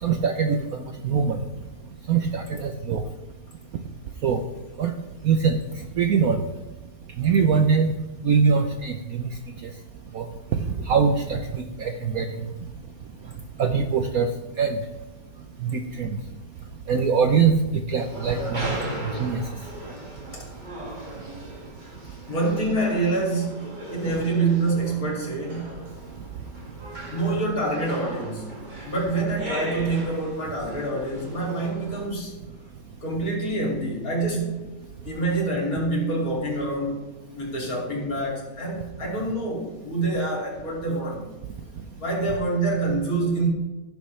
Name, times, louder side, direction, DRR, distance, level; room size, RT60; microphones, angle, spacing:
voice 1, 0.0-1.4 2.1-3.0 4.2-4.4 4.8-4.9 5.2-6.5 7.2-7.9 8.2-9.3 9.6-9.7 10.1-10.3 10.5-12.5 13.6-14.3 14.6-14.8 15.6-16.2 16.9-18.8 19.1-19.4, right 6 dB, 65° right, 5 dB, 1.0 m, -23 dB
sound 1, 18.0-32.1, right 1 dB, 25° right, 2.0 m, -37 dB
voice 2, 22.3-25.9 27.1-28.5 28.8-32.3 33.0-34.6 35.0-41.2 42.0-43.5, right 2 dB, 45° left, -2 dB, 3.1 m, -26 dB
16.5 x 7.0 x 3.2 m, 1.1 s
omnidirectional pair, 2.1 m